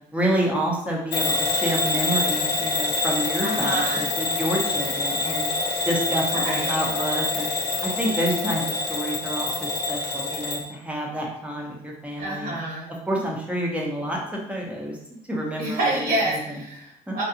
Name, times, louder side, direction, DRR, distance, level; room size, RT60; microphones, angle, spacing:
voice 1, 0.1-5.5 5.9-7.5 7.8-12.6 13.1-15.0 15.3-16.4 17.1-17.2, right 1 dB, 5° right, -2 dB, 0.6 m, -28 dB
Bell / Alarm, 1.1-10.7, left 3 dB, 80° left, 0.6 m, -26 dB
voice 2, 3.4-4.0 6.3-6.7 12.2-12.9 15.6-17.2, right 1 dB, 60° right, -3 dB, 0.9 m, -27 dB
2.4 x 2.3 x 2.7 m, 0.78 s
cardioid pair, 110°, 17 cm